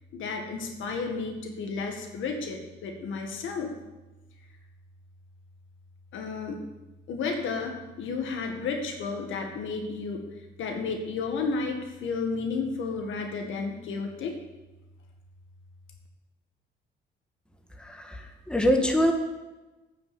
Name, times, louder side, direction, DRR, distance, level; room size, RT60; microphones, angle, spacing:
voice 1, 0.1-3.7 6.1-6.6 7.1-10.2 10.6-14.3, left 4 dB, 80° left, 3 dB, 1.8 m, -32 dB
voice 2, 17.8-19.1, equal, 5° left, 4 dB, 1.4 m, -24 dB
8.8 x 6.3 x 7.9 m, 1.1 s
cardioid pair, 90°, 20 cm